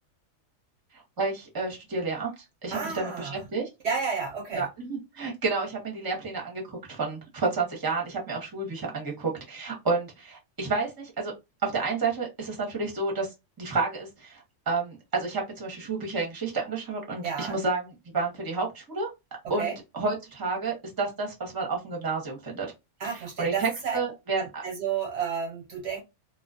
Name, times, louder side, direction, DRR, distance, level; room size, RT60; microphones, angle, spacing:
voice 1, 0.9-2.3 2.6-3.7 4.5-11.3 11.6-13.3 13.6-19.1 19.5-22.7 23.0-24.6, right 4 dB, 20° right, 0.7 m, -30 dB
voice 2, 2.7-3.4 3.8-4.7 17.2-17.6 19.6-19.8 23.0-24.0 24.4-26.0, right 6 dB, 65° right, 0.8 m, -31 dB
2.3 x 2.2 x 2.4 m
omnidirectional pair, 1.3 m